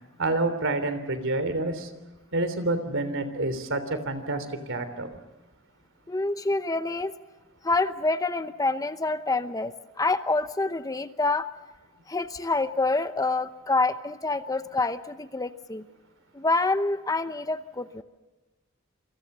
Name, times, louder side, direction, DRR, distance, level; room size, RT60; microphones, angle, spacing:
voice 1, 0.2-1.9 2.3-5.1, right 2 dB, 65° right, 11 dB, 3.3 m, -28 dB
voice 2, 6.1-7.1 7.6-11.5 12.1-15.8 16.3-18.0, left 3 dB, 15° left, 11 dB, 0.8 m, -27 dB
28.0 x 26.0 x 6.8 m, 1.1 s
head